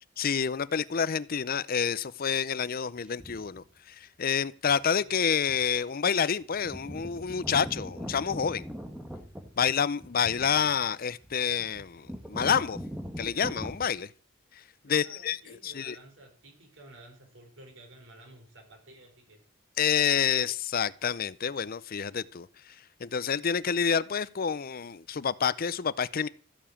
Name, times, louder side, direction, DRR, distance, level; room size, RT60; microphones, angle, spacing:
voice 1, 0.2-8.6 9.6-12.8 13.2-14.1 14.8-15.4 15.6-15.9 19.8-22.5 23.0-26.3, left 7 dB, 50° left, 0.6 m, -28 dB
sound 1, 3.2-3.6 4.7-4.8 5.4-5.8 6.1-6.2 6.4-13.8, equal, 5° right, 1.7 m, -41 dB
voice 2, 14.9-19.4, right 1 dB, 70° right, 5.5 m, -53 dB
14.5 x 7.1 x 8.7 m
head